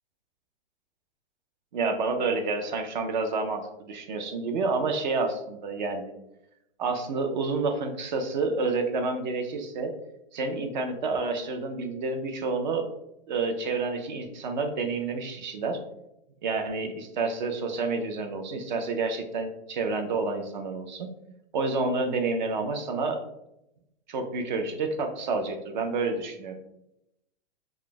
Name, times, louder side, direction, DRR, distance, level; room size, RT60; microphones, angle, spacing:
voice 1, 1.7-6.1 6.8-9.9 10.3-12.9 13.3-15.8 16.4-21.1 21.5-23.2 24.1-26.6, right 3 dB, 45° right, 6 dB, 0.4 m, -29 dB
2.3 x 2.0 x 3.7 m, 0.85 s
hypercardioid pair, 155°, 34 cm